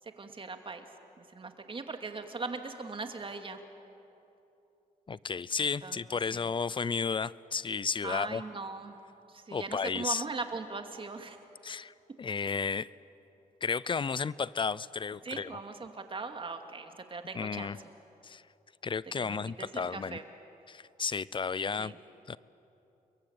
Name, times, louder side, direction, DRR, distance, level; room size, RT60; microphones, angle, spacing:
voice 1, 0.2-0.8 1.2-3.6 5.8-6.0 6.3-6.5 8.0-8.9 9.3-11.4 13.9-14.0 15.2-17.9 19.2-20.2 21.8-22.0, right 3 dB, 35° right, 6 dB, 2.4 m, -40 dB
voice 2, 5.1-8.4 9.5-10.2 11.6-12.9 13.6-15.5 17.3-17.8 18.2-18.4 18.8-20.2 20.7-21.9 22.3-22.4, left 5 dB, 35° left, 20 dB, 0.6 m, -33 dB
29.5 x 22.5 x 8.9 m, 2.9 s
cardioid pair, 90°, 15 cm